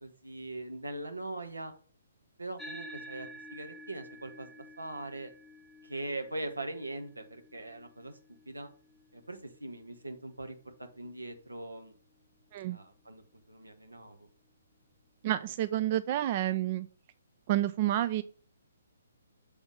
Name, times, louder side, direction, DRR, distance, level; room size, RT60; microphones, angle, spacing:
voice 1, 0.0-1.7 2.4-5.3 5.8-8.2 8.5-8.7 9.1-12.0 12.7-13.2 13.5-14.3, right 2 dB, 90° right, 5 dB, 1.4 m, -41 dB
sound 1, 2.6-11.3, equal, ahead, 0.7 m, -51 dB
voice 2, 15.2-16.9 17.5-18.2, right 13 dB, 40° right, 12 dB, 0.3 m, -29 dB
6.9 x 3.6 x 5.5 m, 0.43 s
figure-of-eight pair, 135°, 0 cm